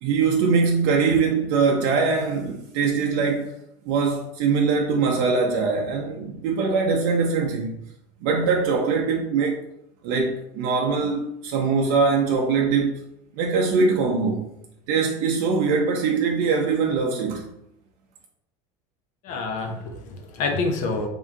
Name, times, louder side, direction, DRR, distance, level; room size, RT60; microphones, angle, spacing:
voice 1, 0.0-3.5 3.9-7.9 8.2-9.6 10.0-13.0 13.4-14.5 14.9-17.5, right 4 dB, 60° right, 0.6 m, -22 dB
voice 2, 19.2-21.1, left 3 dB, 50° left, 0.7 m, -27 dB
3.5 x 2.6 x 3.6 m
supercardioid pair, 130°, 16 cm